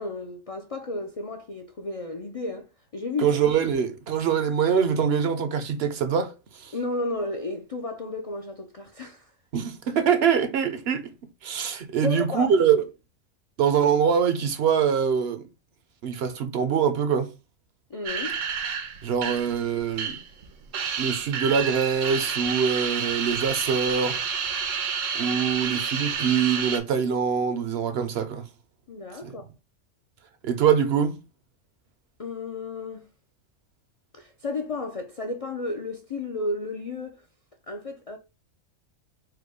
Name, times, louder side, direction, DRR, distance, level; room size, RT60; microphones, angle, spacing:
voice 1, 0.0-3.4 6.7-9.3 12.0-12.5 17.9-18.4 25.3-25.5 28.9-29.5 32.2-33.1 34.1-37.2 37.7-38.2, left 2 dB, 50° left, 0.4 m, -33 dB
voice 2, 3.2-6.7 9.5-11.1 11.4-12.9 13.6-15.5 16.0-17.3 19.0-20.2 21.0-24.2 25.1-28.4 29.2-29.3 30.4-31.2, right 7 dB, 60° right, 0.8 m, -24 dB
sound 1, 18.0-20.4 20.7-26.8, right 6 dB, 80° right, 1.2 m, -29 dB
4.7 x 2.2 x 4.6 m
omnidirectional pair, 1.3 m